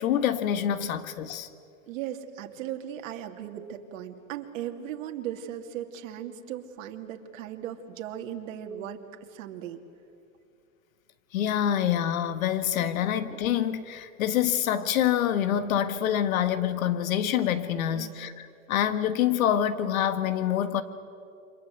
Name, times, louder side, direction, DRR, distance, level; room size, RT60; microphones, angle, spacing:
voice 1, 0.0-1.5 11.3-20.8, left 10 dB, 80° left, 11 dB, 1.8 m, -26 dB
voice 2, 1.9-9.8 13.0-13.1 17.9-18.2, right 10 dB, 70° right, 4 dB, 2.5 m, -37 dB
28.5 x 25.0 x 8.2 m, 2.5 s
supercardioid pair, 140°, 41 cm